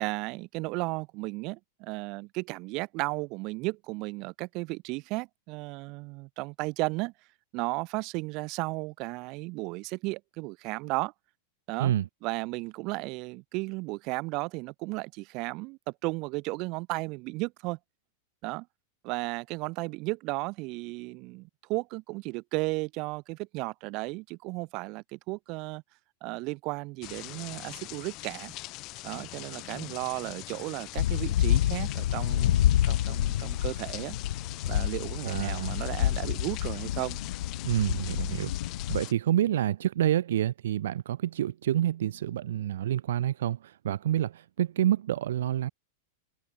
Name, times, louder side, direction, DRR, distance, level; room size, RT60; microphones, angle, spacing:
voice 1, 0.0-7.1 7.5-11.1 11.7-11.9 12.2-17.8 18.4-18.7 19.0-25.8 26.2-28.5 29.0-34.2 34.7-37.2, right 25 dB, 30° right, 5.7 m, -34 dB
sound 1, 27.0-39.1, left 21 dB, 30° left, 6.0 m, -43 dB
sound 2, 31.0-39.0, left 12 dB, 70° left, 2.7 m, -28 dB
voice 2, 35.2-35.7 37.6-38.5 38.9-45.7, right 12 dB, 75° right, 2.1 m, -28 dB
supercardioid pair, 175°, 0 cm